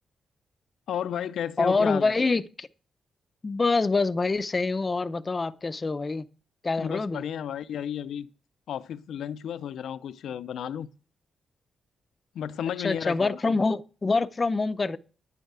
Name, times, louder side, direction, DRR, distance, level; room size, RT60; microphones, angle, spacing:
voice 1, 0.9-2.1 6.8-8.3 8.7-10.9 12.3-13.4, left 9 dB, 85° left, 0.6 m, -33 dB
voice 2, 1.6-2.7 3.4-6.2 6.6-7.2 12.8-15.0, left 3 dB, 35° left, 0.6 m, -25 dB
10.0 x 9.3 x 4.8 m
cardioid pair, 75°, 0 cm